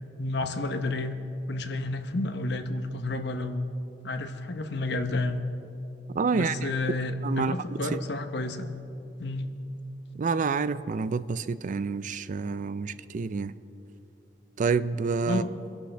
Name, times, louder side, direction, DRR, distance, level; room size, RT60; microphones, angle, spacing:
voice 1, 0.2-1.1 1.5-3.7 4.0-5.4 6.3-8.8 9.2-9.5 15.3-15.5, left 2 dB, 65° left, 0.9 m, -30 dB
voice 2, 6.1-6.7 7.2-8.0 10.1-13.6 14.6-15.4, right 4 dB, 45° right, 0.4 m, -28 dB
24.5 x 11.5 x 3.3 m
head